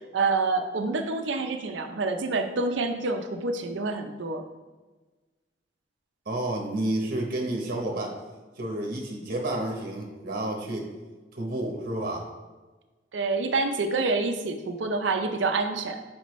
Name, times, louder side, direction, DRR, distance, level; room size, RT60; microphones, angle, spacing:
voice 1, 0.1-4.4 13.1-16.0, right 3 dB, 80° right, 6 dB, 0.6 m, -27 dB
voice 2, 6.3-8.2 8.6-10.9 11.3-12.3, right 1 dB, 50° right, 0 dB, 1.0 m, -30 dB
6.7 x 5.0 x 3.1 m, 1.2 s
head